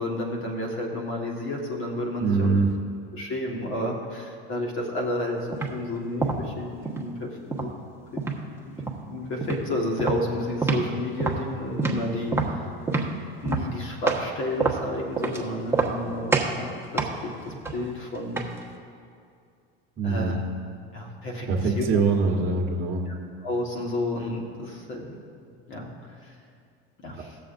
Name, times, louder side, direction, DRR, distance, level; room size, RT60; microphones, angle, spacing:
voice 1, 0.0-2.6 3.1-7.8 8.6-8.7 9.1-12.7 13.1-18.4 20.0-20.4 20.9-22.0 23.1-23.2 23.4-25.2 25.7-25.9 26.2-26.3 27.0-27.4, left 1 dB, 45° left, 0 dB, 1.6 m, -31 dB
voice 2, 2.2-2.7 20.0-20.4 21.5-23.0, right 4 dB, 35° right, -1 dB, 1.1 m, -23 dB
sound 1, 5.5-5.8 6.2-7.1 7.5-8.4 8.8-9.1 9.4-9.6 10.0-10.9 11.2-14.3 14.6-15.4 15.7-16.0 16.3-16.6 17.0-18.7, right 4 dB, 10° right, 1.2 m, -27 dB
18.5 x 7.1 x 2.6 m, 2.3 s
supercardioid pair, 105°, 29 cm